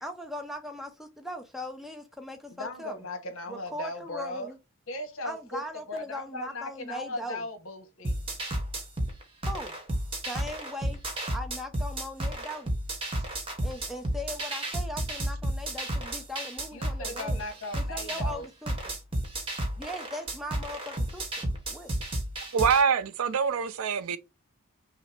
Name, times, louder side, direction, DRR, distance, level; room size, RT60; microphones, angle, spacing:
voice 1, 0.0-3.0 3.5-4.6 5.2-7.4 9.5-9.8 10.3-11.0 11.3-12.7 13.6-17.4 17.7-18.9 19.8-21.9, left 1 dB, ahead, 0.6 m, -39 dB
voice 2, 2.6-4.5 4.9-5.6 5.9-8.2 16.7-18.5, left 2 dB, 65° left, 1.1 m, -37 dB
sound 1, 8.0-22.8, right 1 dB, 25° right, 1.0 m, -32 dB
voice 3, 22.5-24.2, right 6 dB, 75° right, 0.5 m, -25 dB
5.6 x 2.0 x 4.4 m
head